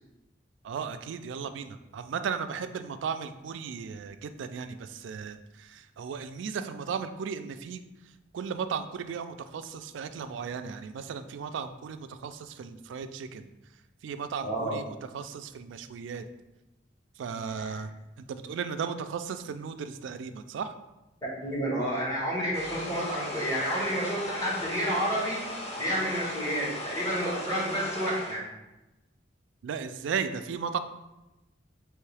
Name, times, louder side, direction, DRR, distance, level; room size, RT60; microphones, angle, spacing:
voice 1, 0.6-7.8 8.3-13.5 14.0-16.3 17.2-17.9 18.2-20.7 29.6-30.8, right 6 dB, 80° right, 9 dB, 0.3 m, -35 dB
voice 2, 14.4-14.8 17.6-17.7 21.2-25.4 25.8-28.4, equal, 20° left, -7 dB, 1.5 m, -30 dB
sound 1, 22.5-28.4, left 1 dB, 35° left, 0.6 m, -38 dB
4.5 x 3.1 x 3.3 m, 0.99 s
head